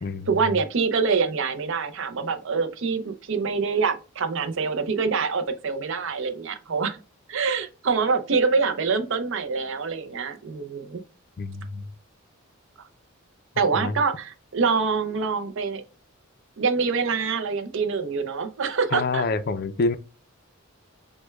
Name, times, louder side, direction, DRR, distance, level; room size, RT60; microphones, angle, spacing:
voice 1, 0.3-7.0 7.3-11.0 13.6-15.8 16.6-19.2, right 5 dB, 65° right, 0.5 m, -25 dB
voice 2, 11.4-11.9 13.7-14.0 18.9-19.9, left 3 dB, 45° left, 0.4 m, -27 dB
6.0 x 2.2 x 2.3 m
head